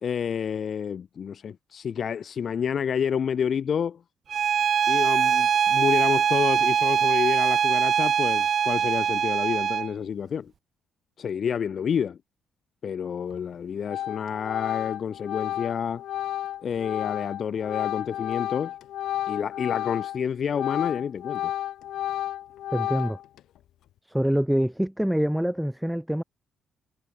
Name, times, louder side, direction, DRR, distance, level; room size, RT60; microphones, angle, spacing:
voice 1, 0.0-4.0 4.9-10.5 11.2-12.2 12.8-16.0 16.6-18.7 19.3-21.5, left 7 dB, 55° left, 1.2 m, -29 dB
Bowed string instrument, 4.3-9.9, right 8 dB, 55° right, 0.4 m, -22 dB
Organ, 13.3-13.5 13.9-20.2 20.5-23.4, left 12 dB, 80° left, 1.7 m, -32 dB
voice 2, 22.7-23.2 24.0-26.2, equal, 5° right, 1.4 m, -25 dB
cardioid pair, 90°, 0 cm